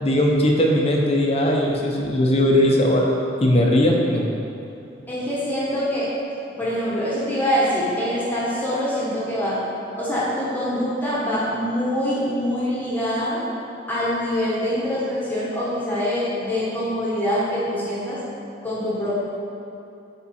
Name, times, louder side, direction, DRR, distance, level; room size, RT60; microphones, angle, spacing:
voice 1, 0.0-4.3, left 1 dB, 35° left, 0 dB, 0.7 m, -19 dB
voice 2, 5.1-6.1 6.6-9.6 10.0-13.4 13.9-18.2 18.6-19.1, equal, 10° left, -8 dB, 1.2 m, -24 dB
8.3 x 3.7 x 4.4 m, 2.8 s
head